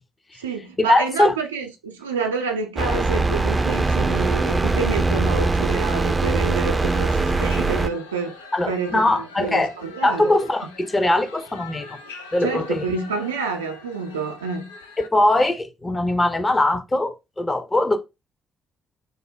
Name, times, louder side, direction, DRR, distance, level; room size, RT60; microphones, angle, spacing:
voice 1, 0.3-8.4 8.7-10.3 12.4-14.7, right 4 dB, 85° right, 0.4 m, -28 dB
voice 2, 0.9-1.3 8.5-9.7 10.0-12.0 12.3-12.8 15.1-18.0, left 1 dB, 25° left, 0.7 m, -21 dB
sound 1, 2.8-7.9, right 3 dB, 25° right, 0.4 m, -21 dB
sound 2, 6.8-15.1, left 4 dB, 80° left, 0.4 m, -43 dB
3.5 x 2.1 x 3.3 m
figure-of-eight pair, 40°, 0 cm